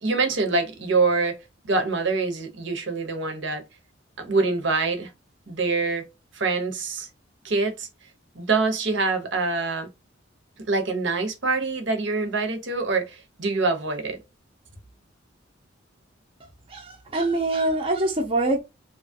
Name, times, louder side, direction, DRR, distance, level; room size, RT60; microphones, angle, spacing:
voice 1, 0.0-1.4 1.6-3.6 4.2-5.1 5.5-6.1 6.3-7.1 7.4-7.9 8.3-9.9 10.7-14.2, right 3 dB, 65° right, 0.9 m, -25 dB
voice 2, 16.7-18.6, right 2 dB, 30° right, 0.6 m, -24 dB
3.0 x 2.3 x 2.6 m
head